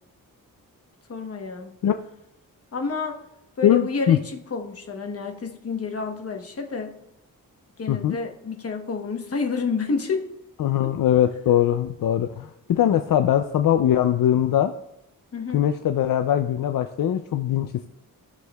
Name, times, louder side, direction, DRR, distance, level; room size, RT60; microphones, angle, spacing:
voice 1, 1.1-1.7 2.7-3.2 3.6-7.0 7.8-10.3 15.3-15.6, left 4 dB, 45° left, 3 dB, 1.1 m, -29 dB
voice 2, 3.6-4.2 7.9-8.2 10.6-14.7 15.5-17.9, left 11 dB, 70° left, 8 dB, 0.5 m, -21 dB
16.5 x 6.2 x 2.3 m, 0.84 s
wide cardioid pair, 145°, 35 cm